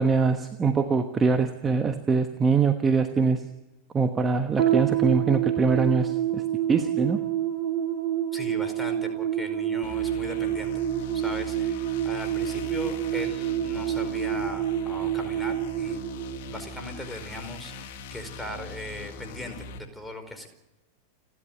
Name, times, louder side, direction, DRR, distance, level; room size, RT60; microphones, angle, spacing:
voice 1, 0.0-3.5 3.9-7.2, right 4 dB, 20° right, 9 dB, 1.2 m, -23 dB
sound 1, 4.6-17.1, right 11 dB, 45° right, 2.6 m, -28 dB
voice 2, 8.3-10.9 11.1-16.0 16.5-20.5, left 1 dB, 5° left, 5 dB, 4.6 m, -39 dB
sound 2, 9.8-19.8, left 3 dB, 50° left, 2.3 m, -41 dB
29.5 x 11.5 x 9.2 m, 1.0 s
figure-of-eight pair, 90°, 0 cm